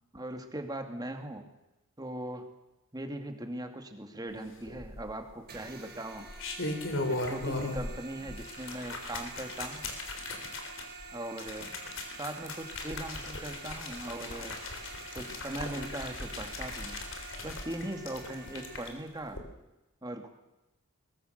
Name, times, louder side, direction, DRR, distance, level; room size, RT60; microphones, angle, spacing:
voice 1, 0.1-1.5 2.0-2.5 2.9-6.3 7.1-9.9 11.1-11.7 12.2-14.6 15.1-17.0 17.4-19.4 20.0-20.3, right 1 dB, 20° right, 5 dB, 2.3 m, -39 dB
sound 1, 4.7-5.3 6.1-8.0 8.3-18.9 19.3-19.4, left 2 dB, 60° left, 4.0 m, -38 dB
sound 2, 5.5-18.9, right 4 dB, 45° right, 5.0 m, -48 dB
22.5 x 21.5 x 6.7 m, 1.0 s
head